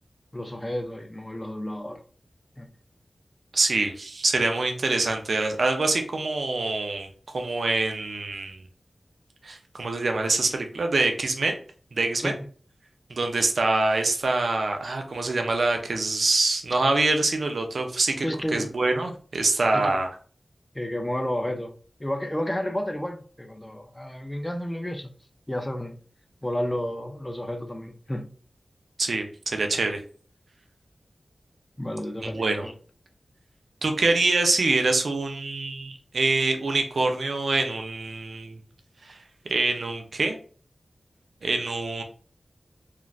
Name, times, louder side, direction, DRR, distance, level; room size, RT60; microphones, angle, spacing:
voice 1, 0.3-2.0 2.6-2.7 12.2-12.4 18.2-18.7 19.7-20.0 20.7-21.7 22.0-25.1 25.5-26.0 26.4-28.3 31.8-32.7, left 1 dB, 15° left, 0.4 m, -31 dB
voice 2, 3.5-7.1 7.3-8.6 9.4-11.5 11.9-12.3 13.1-18.3 18.5-20.1 29.0-30.0 32.2-32.7 33.8-38.6 39.0-39.2 39.5-40.4 41.4-42.0, right 3 dB, 80° right, 0.5 m, -25 dB
3.1 x 2.4 x 2.4 m
wide cardioid pair, 80°, 0 cm